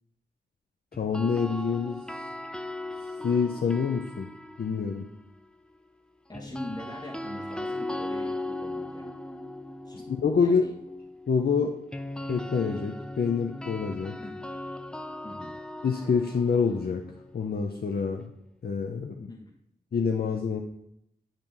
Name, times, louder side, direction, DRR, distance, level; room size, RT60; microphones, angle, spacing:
sound 1, 0.9-5.1 6.3-18.2, left 1 dB, 5° left, 0.4 m, -38 dB
voice 1, 1.0-2.0 3.2-4.3 4.6-5.1 10.1-10.7 11.3-11.8 12.3-14.2 15.8-17.0 17.3-18.3 18.6-19.3 19.9-20.6, left 5 dB, 60° left, 2 dB, 0.6 m, -26 dB
voice 2, 6.3-9.1 9.8-10.0 10.4-10.7 14.2-14.4 15.2-15.5 19.3-19.6, left 1 dB, 25° left, -1 dB, 1.1 m, -42 dB
8.9 x 3.0 x 5.3 m, 0.75 s
wide cardioid pair, 65°, 18 cm